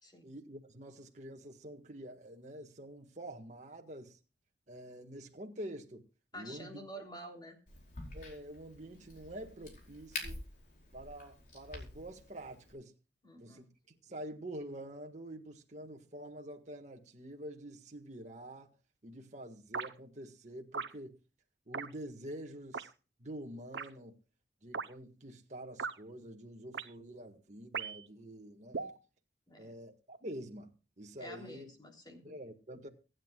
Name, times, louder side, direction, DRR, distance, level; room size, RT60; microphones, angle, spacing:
voice 1, 0.2-4.2 4.7-6.0 6.3-6.8 8.1-10.4 10.9-12.9 13.4-13.7 14.0-18.7 19.0-21.2 21.7-22.9 23.2-24.2 24.6-28.9 29.6-30.7 31.0-31.7 32.2-32.9, right 1 dB, 40° right, 1.7 m, -47 dB
voice 2, 6.3-7.6 13.2-13.7 29.5-29.8 31.2-32.4, right 1 dB, 25° left, 3.4 m, -49 dB
Crack, 7.7-12.7, left 2 dB, 50° left, 4.8 m, -47 dB
sound 1, 19.7-19.9 20.7-20.9 21.7-21.9 22.7-22.9 23.7-23.9 24.7-24.9 25.8-25.9 26.7-26.9 27.7-28.1 28.7-29.0, right 5 dB, 85° right, 0.9 m, -38 dB
24.5 x 9.5 x 2.4 m
head